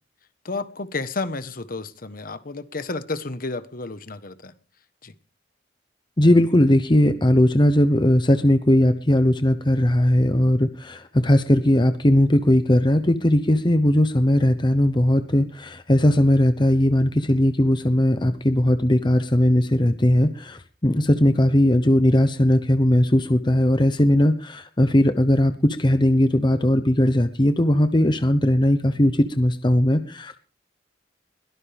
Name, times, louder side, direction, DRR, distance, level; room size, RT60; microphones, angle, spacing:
voice 1, 0.4-4.5 5.0-5.1, left 3 dB, 50° left, 1.3 m, -31 dB
voice 2, 6.2-30.4, left 1 dB, 25° left, 0.9 m, -19 dB
22.0 x 17.5 x 3.5 m
head